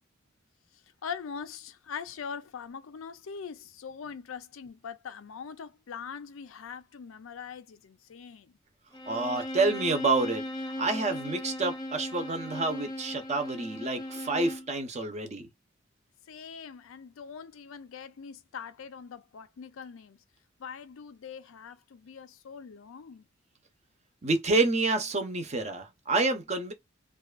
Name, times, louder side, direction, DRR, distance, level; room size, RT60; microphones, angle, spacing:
voice 1, 0.7-8.6 16.3-20.2 20.6-23.2, left 6 dB, 75° left, 0.4 m, -42 dB
Bowed string instrument, 8.9-14.7, left 1 dB, 20° left, 0.4 m, -38 dB
voice 2, 9.1-15.5 24.2-26.7, right 3 dB, 35° right, 0.6 m, -28 dB
2.5 x 2.3 x 2.3 m
head